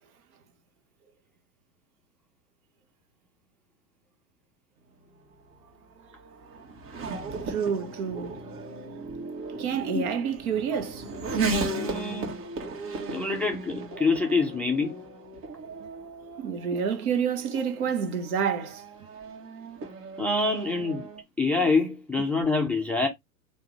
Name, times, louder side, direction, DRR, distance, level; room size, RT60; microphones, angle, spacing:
Race car auto racing / Accelerating revving vroom, 5.0-21.2, right 3 dB, 45° right, 1.9 m, -36 dB
voice 1, 7.5-8.6 9.6-11.1 15.8-15.9 16.4-18.8, right 7 dB, 65° right, 1.4 m, -29 dB
voice 2, 11.7-12.4 13.1-15.0 16.7-16.8 20.2-21.1 21.4-23.1, left 3 dB, 5° left, 0.4 m, -26 dB
3.7 x 3.0 x 4.7 m
hypercardioid pair, 115°, 47 cm